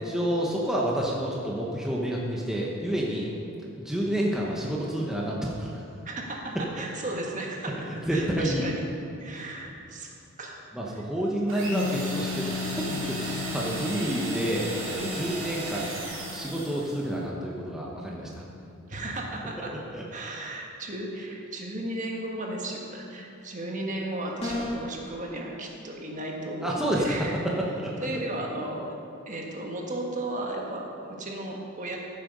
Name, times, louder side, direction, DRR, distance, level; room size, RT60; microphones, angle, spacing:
voice 1, 0.0-3.3 3.8-5.8 8.1-8.6 9.3-9.5 10.7-18.4 19.9-20.0 26.6-27.1 27.7-27.9, right 1 dB, ahead, -4 dB, 1.1 m, -29 dB
voice 2, 6.0-7.7 8.1-8.8 9.2-10.1 10.4-10.7 10.9-11.0 13.3-13.5 15.0-15.3 18.9-19.7 20.1-27.3 28.0-28.9 29.3-32.0, right 1 dB, 35° right, 0 dB, 1.5 m, -35 dB
sound 1, 11.5-17.1, right 2 dB, 70° right, 2.4 m, -36 dB
Piano, 11.7-19.0, left 7 dB, 85° left, 0.5 m, -38 dB
sound 2, 24.4-24.9, left 1 dB, 30° left, 2.3 m, -31 dB
14.5 x 7.6 x 5.4 m, 2.6 s
head